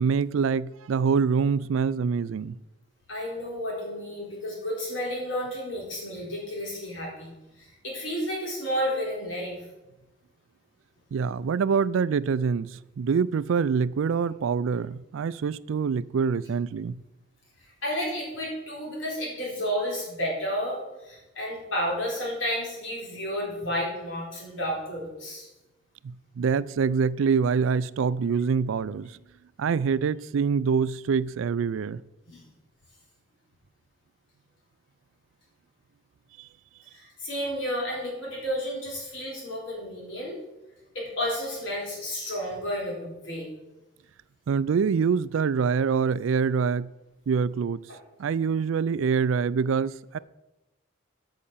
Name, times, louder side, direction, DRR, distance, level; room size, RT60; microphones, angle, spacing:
voice 1, 0.0-2.6 11.1-17.0 26.0-29.2 29.6-32.0 44.5-46.9 47.3-47.8 48.2-50.2, right 6 dB, 80° right, 0.4 m, -25 dB
voice 2, 3.1-7.3 7.6-9.6 17.8-25.5 32.3-32.4 36.9-40.4 40.9-43.5, equal, 70° left, 4.1 m, -31 dB
8.6 x 6.5 x 7.2 m
head